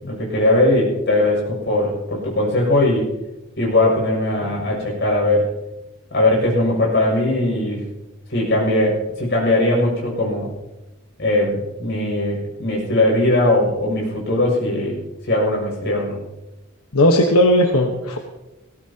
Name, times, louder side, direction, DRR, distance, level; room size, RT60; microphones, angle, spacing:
voice 1, 0.0-3.1 3.6-5.5 6.1-7.9 8.3-10.5 11.2-15.0 15.3-16.2, left 1 dB, 50° left, -2 dB, 6.8 m, -19 dB
voice 2, 16.9-18.2, left 1 dB, 75° left, 2 dB, 1.3 m, -16 dB
19.5 x 17.5 x 2.9 m, 1.0 s
head